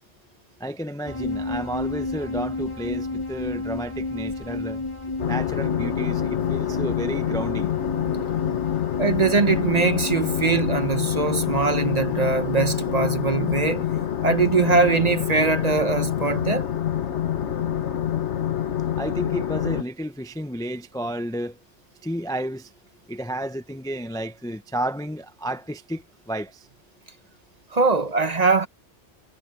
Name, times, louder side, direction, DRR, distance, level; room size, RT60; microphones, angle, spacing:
voice 1, 0.6-4.9 5.3-7.7 19.0-21.6 22.0-22.7 23.1-26.7, right 1 dB, 5° left, 0.6 m, -31 dB
sound 1, 1.1-13.0, left 2 dB, 25° left, 3.2 m, -32 dB
sound 2, 5.2-19.8, left 10 dB, 70° left, 1.4 m, -26 dB
voice 2, 9.0-13.9 14.2-16.7 27.7-28.7, right 4 dB, 35° right, 1.0 m, -22 dB
omnidirectional pair, 1.2 m